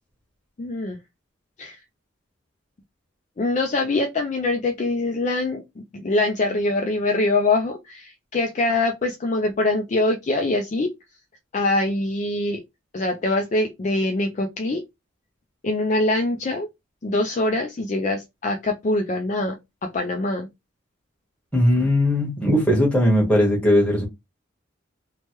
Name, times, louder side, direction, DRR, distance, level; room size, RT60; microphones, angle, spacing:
voice 1, 0.6-1.0 1.6-1.8 3.4-10.9 11.5-12.6 12.9-14.8 15.6-16.7 17.0-20.5, left 2 dB, 35° left, 0.3 m, -24 dB
voice 2, 21.5-24.1, left 1 dB, 5° left, 1.3 m, -19 dB
3.1 x 2.1 x 2.9 m
head